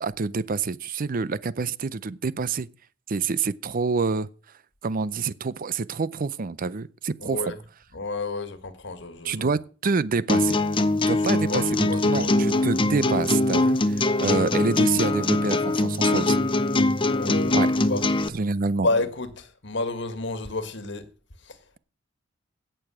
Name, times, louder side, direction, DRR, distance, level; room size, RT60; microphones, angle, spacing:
voice 1, 0.0-2.7 3.1-4.3 4.8-7.5 9.2-10.5 11.0-16.4 17.5-17.7 18.3-18.9, right 4 dB, 45° right, 0.5 m, -27 dB
voice 2, 7.2-7.6 7.9-9.5 11.1-12.3 17.1-17.6 17.9-18.0 18.8-21.1 21.5-21.6, left 2 dB, 65° left, 1.6 m, -30 dB
sound 1, 10.3-18.3, left 2 dB, 25° left, 0.7 m, -22 dB
17.0 x 6.8 x 6.0 m
head